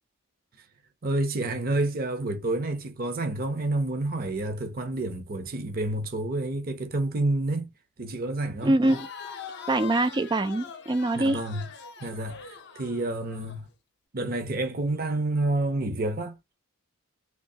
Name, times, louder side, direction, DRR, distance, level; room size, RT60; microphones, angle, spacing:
voice 1, 1.0-7.7 8.0-8.7 11.1-11.7 12.0-13.7 14.1-16.6, right 2 dB, 45° right, 0.7 m, -29 dB
Crowd, 8.6-13.6, left 6 dB, 50° left, 0.7 m, -42 dB
voice 2, 8.6-9.1 9.7-11.4, right 2 dB, 20° right, 0.3 m, -24 dB
3.5 x 2.9 x 2.7 m
head